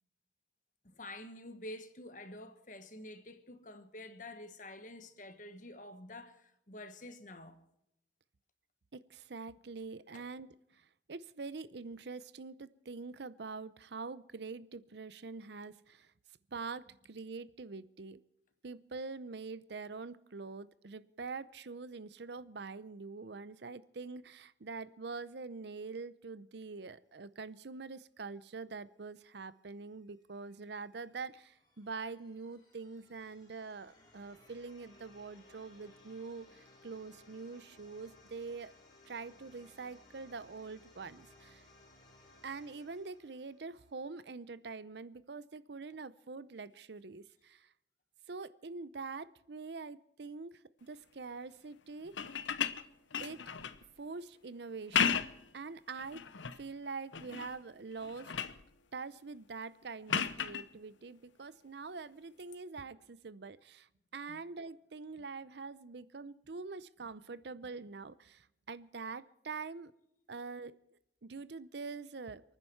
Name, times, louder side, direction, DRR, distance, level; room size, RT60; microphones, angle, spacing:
voice 1, 0.8-7.6 10.1-10.3 64.3-64.4, left 1 dB, 45° left, 1.5 m, -48 dB
voice 2, 8.9-16.1 16.5-18.2 18.6-38.7 39.0-41.6 42.4-47.7 48.3-52.2 53.2-53.4 54.0-55.3 55.5-56.2 56.6-58.3 58.9-69.9 70.3-70.8 71.2-72.4, right 4 dB, 65° right, 0.6 m, -45 dB
sound 1, 30.2-44.0, left 2 dB, 20° left, 4.2 m, -62 dB
sound 2, 52.1-53.8 54.7-55.5 56.0-56.6 57.1-57.6 57.9-58.6 60.1-60.7 62.4-62.5, left 7 dB, 85° left, 0.9 m, -34 dB
29.0 x 9.9 x 4.6 m
head